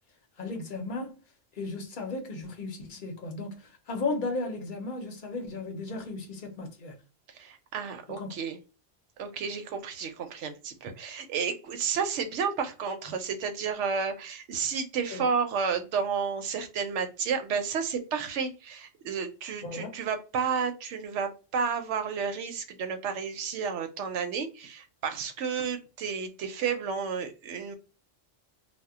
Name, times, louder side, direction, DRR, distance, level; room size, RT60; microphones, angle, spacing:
voice 1, 0.4-1.1 1.6-6.9 8.2-8.3 15.1-15.2 19.6-19.9, left 3 dB, 50° left, 0.8 m, -35 dB
voice 2, 7.3-8.6 9.2-27.8, right 6 dB, 75° right, 0.9 m, -31 dB
2.2 x 2.1 x 3.5 m
omnidirectional pair, 1.3 m